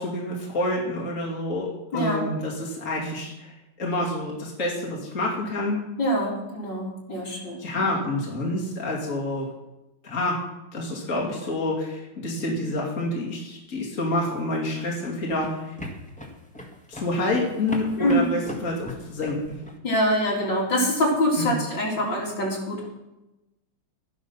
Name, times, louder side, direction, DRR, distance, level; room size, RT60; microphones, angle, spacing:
voice 1, 0.0-5.8 7.6-9.5 10.0-10.4 10.7-15.8 16.9-19.4 21.4-21.6, left 1 dB, 35° left, -3 dB, 3.0 m, -28 dB
voice 2, 1.9-2.3 6.0-7.6 18.0-18.3 19.8-22.8, equal, 60° left, -3 dB, 3.8 m, -24 dB
sound 1, 14.1-19.8, left 2 dB, 5° left, 1.4 m, -39 dB
13.5 x 11.5 x 5.7 m, 0.98 s
omnidirectional pair, 2.3 m